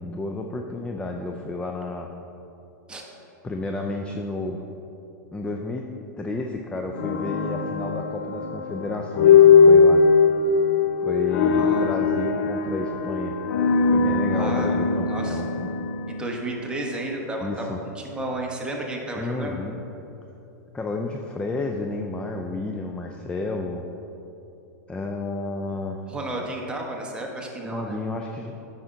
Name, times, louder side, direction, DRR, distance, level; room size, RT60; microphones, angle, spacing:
voice 1, 0.0-2.1 3.4-4.6 5.3-5.8 6.2-10.0 11.0-13.4 13.9-15.7 17.4-17.8 19.1-19.8 20.7-23.9 24.9-26.0 27.6-28.5, left 2 dB, 10° left, 2 dB, 0.4 m, -31 dB
sound 1, 7.0-17.0, left 5 dB, 70° left, 0.5 m, -20 dB
voice 2, 11.5-11.9 14.3-14.7 15.1-15.4 16.1-19.6 26.1-28.0, right 2 dB, 10° right, -1 dB, 1.2 m, -32 dB
9.0 x 5.7 x 3.8 m, 2.9 s
hypercardioid pair, 120°, 9 cm